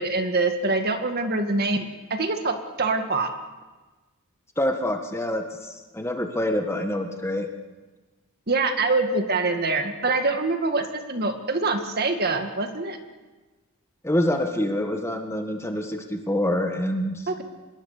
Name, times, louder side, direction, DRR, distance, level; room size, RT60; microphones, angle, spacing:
voice 1, 0.0-1.9 2.1-3.3 8.5-13.0 17.3-17.4, right 3 dB, 45° right, 6 dB, 2.1 m, -24 dB
voice 2, 4.6-7.5 14.0-17.3, left 1 dB, 10° left, 4 dB, 1.7 m, -26 dB
25.5 x 21.5 x 6.8 m, 1.2 s
head